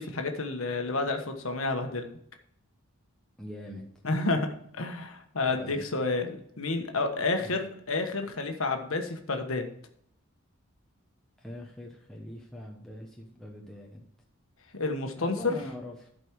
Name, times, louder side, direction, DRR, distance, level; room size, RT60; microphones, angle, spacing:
voice 1, 0.0-2.1 4.0-4.5 4.7-9.7 14.7-15.6, left 3 dB, 70° left, 5 dB, 1.3 m, -30 dB
voice 2, 3.4-3.9 5.5-5.8 7.4-7.5 11.4-14.1 15.2-16.1, left 1 dB, ahead, -1 dB, 1.0 m, -42 dB
12.0 x 5.2 x 4.7 m, 0.68 s
head